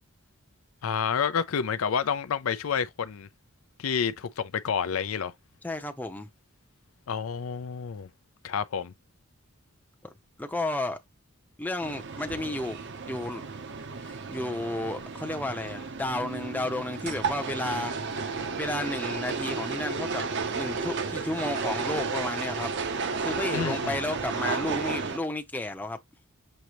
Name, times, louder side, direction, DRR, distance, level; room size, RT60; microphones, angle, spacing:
voice 1, 0.8-3.3 3.8-5.3 7.1-8.1 8.4-8.9 23.5-24.0, left 7 dB, 75° left, 0.5 m, -29 dB
voice 2, 5.6-6.3 10.0-10.1 10.4-11.0 11.6-12.8 13.1-13.4 14.0-20.3 20.5-22.7 23.2-26.0, left 1 dB, 10° left, 0.6 m, -32 dB
sound 1, 11.8-25.2, right 4 dB, 55° right, 0.7 m, -33 dB
6.4 x 2.7 x 3.0 m
head